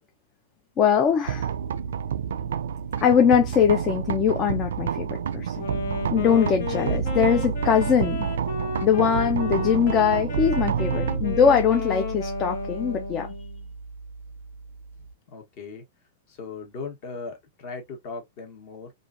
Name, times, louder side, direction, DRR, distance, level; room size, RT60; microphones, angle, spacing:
voice 1, 0.8-1.5 3.0-5.6 6.1-8.3 8.8-13.3, left 7 dB, 20° left, 0.4 m, -22 dB
sound 1, 1.3-15.1, right 7 dB, 85° right, 0.3 m, -29 dB
Wind instrument woodwind instrument, 5.6-13.6, left 4 dB, 65° left, 0.9 m, -34 dB
voice 2, 15.3-15.8 16.3-18.9, left 4 dB, 35° left, 1.1 m, -38 dB
3.0 x 2.5 x 2.5 m
supercardioid pair, 165°, 0 cm